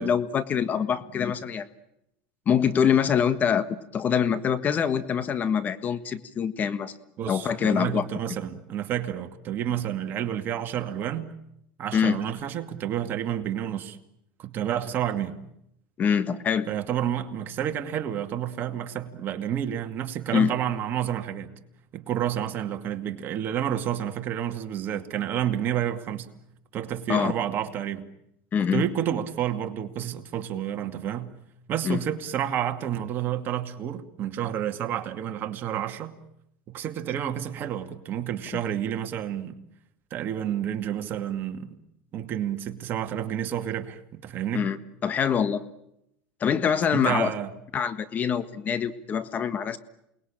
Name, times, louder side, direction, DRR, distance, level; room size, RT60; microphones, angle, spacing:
voice 1, 0.0-1.7 2.4-6.9 7.3-8.1 11.9-12.2 16.0-16.7 20.3-20.5 27.1-27.3 28.5-28.9 31.8-32.0 38.5-38.6 44.5-44.8 45.0-45.6 46.4-47.3 47.7-49.8, left 7 dB, 35° left, 1.5 m, -24 dB
voice 2, 7.2-11.3 11.8-14.0 14.4-15.4 16.7-21.5 21.9-26.3 26.7-28.0 28.7-31.3 31.7-36.2 36.7-39.6 40.1-41.7 42.1-44.7 46.9-47.5, right 10 dB, 45° right, 2.3 m, -30 dB
28.5 x 20.0 x 8.9 m
supercardioid pair, 100°, 5 cm